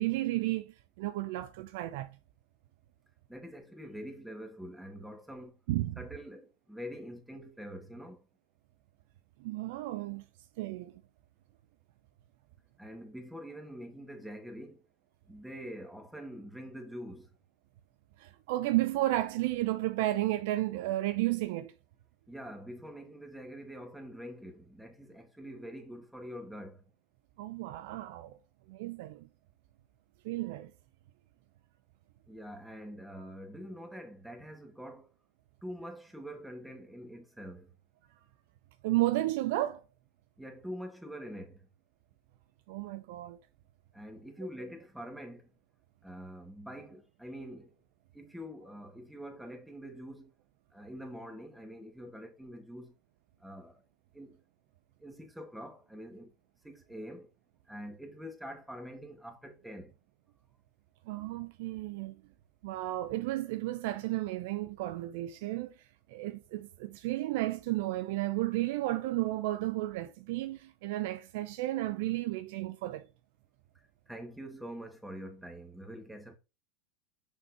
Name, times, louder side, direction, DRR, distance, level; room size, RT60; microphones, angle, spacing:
voice 1, 0.0-2.2 5.7-6.0 9.4-10.2 10.6-10.9 18.2-21.7 27.4-28.4 28.7-29.3 30.2-30.7 38.8-39.8 42.7-43.4 61.1-62.2 62.6-65.7 66.1-73.1, right 16 dB, 60° right, 0.5 m, -33 dB
voice 2, 3.3-5.6 6.0-8.2 12.8-14.8 15.3-17.3 22.3-26.8 32.3-35.1 35.6-37.7 40.4-41.7 43.9-45.5 46.0-47.8 48.1-50.3 50.7-52.9 53.4-53.8 54.1-54.4 55.0-56.3 56.6-57.3 57.7-59.9 74.1-76.4, equal, 5° right, 1.9 m, -45 dB
6.5 x 5.8 x 2.9 m
hypercardioid pair, 85°, 0 cm